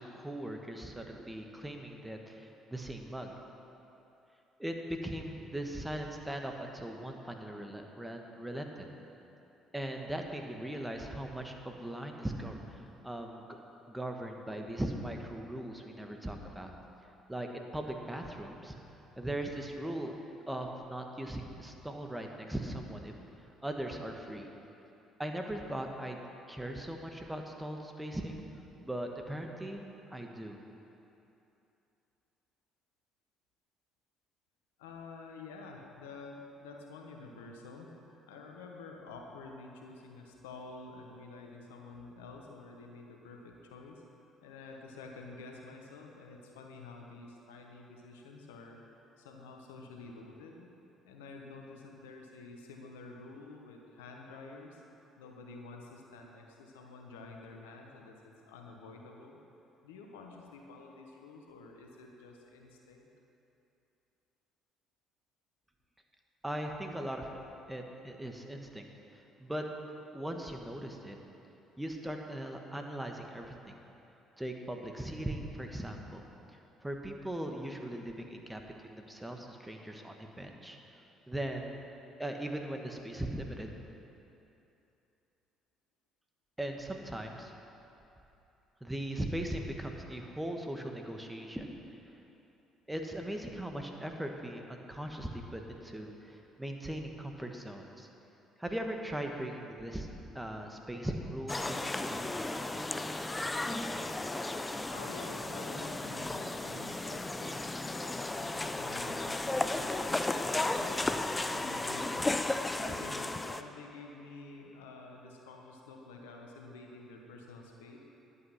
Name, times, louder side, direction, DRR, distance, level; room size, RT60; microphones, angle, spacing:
voice 1, 0.0-3.3 4.6-8.9 9.7-13.5 13.9-16.7 17.3-18.8 19.2-20.1 20.5-23.1 23.6-24.5 25.2-26.2 26.5-28.4 28.8-29.8 30.1-30.6 66.4-67.3 67.7-68.9 69.1-69.6 70.1-71.2 71.8-73.8 74.4-76.2 76.8-80.8 81.3-81.8 82.2-83.7 86.6-87.5 88.8-91.7 92.9-98.1 98.6-100.1 100.3-102.9, right 1 dB, 10° right, 3 dB, 1.4 m, -39 dB
voice 2, 34.8-44.0 44.4-48.8 49.2-50.7 51.0-54.8 55.2-59.4 59.8-63.1 104.9-112.4 112.8-118.0, left 3 dB, 85° left, 1 dB, 1.1 m, -49 dB
sound 1, 101.5-113.6, left 2 dB, 20° left, 0.6 m, -34 dB
11.0 x 8.3 x 5.8 m, 2.9 s
hypercardioid pair, 60°, 0 cm